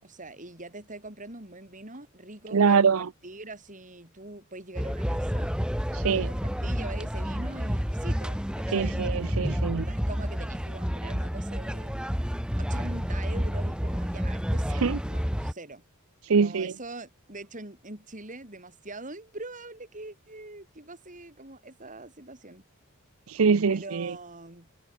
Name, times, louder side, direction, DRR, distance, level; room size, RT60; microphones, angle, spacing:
voice 1, 0.0-5.5 6.1-9.0 9.8-12.0 12.6-15.8 16.4-22.6 23.7-24.7, right 2 dB, 35° right, 7.3 m, -43 dB
voice 2, 2.5-3.1 5.9-6.3 8.7-9.9 14.8-15.0 16.2-16.7 23.3-24.1, right 5 dB, 70° right, 0.6 m, -23 dB
sound 1, 4.7-15.5, equal, 5° right, 3.7 m, -30 dB
head